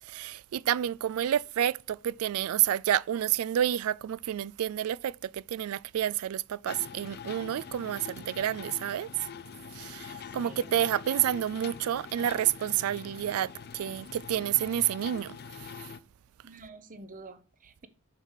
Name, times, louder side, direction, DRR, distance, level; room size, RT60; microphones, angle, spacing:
voice 1, 0.0-9.1 9.7-15.9, right 11 dB, 70° right, 0.3 m, -29 dB
sound 1, 6.7-16.0, left 7 dB, 45° left, 0.4 m, -44 dB
voice 2, 10.2-10.7 16.4-17.9, right 3 dB, 35° right, 0.9 m, -48 dB
6.9 x 6.5 x 5.6 m
head